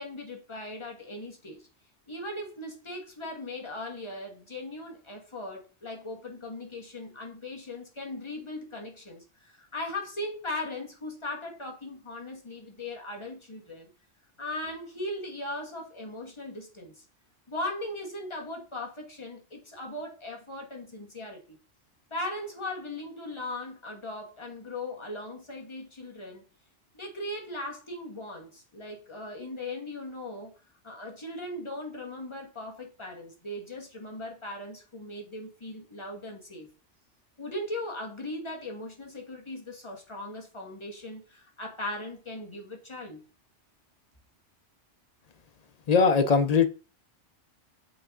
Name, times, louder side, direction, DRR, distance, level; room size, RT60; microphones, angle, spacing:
voice 1, 0.0-1.6 2.1-13.9 14.4-17.0 17.5-21.6 22.1-26.4 26.9-30.5 30.8-36.7 37.4-43.2, left 1 dB, 25° left, 1.5 m, -38 dB
voice 2, 45.9-46.7, left 5 dB, 50° left, 0.5 m, -20 dB
8.6 x 3.5 x 3.6 m
omnidirectional pair, 1.2 m